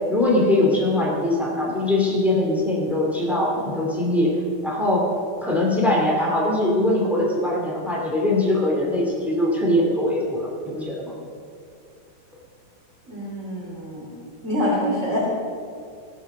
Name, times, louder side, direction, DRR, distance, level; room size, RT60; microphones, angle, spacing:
voice 1, 0.1-4.3 4.6-5.0 5.4-11.1, left 1 dB, ahead, -3 dB, 0.6 m, -22 dB
voice 2, 13.1-14.1 14.4-15.2, equal, 25° right, -7 dB, 2.0 m, -26 dB
17.0 x 7.6 x 6.7 m, 2.4 s
omnidirectional pair, 5.0 m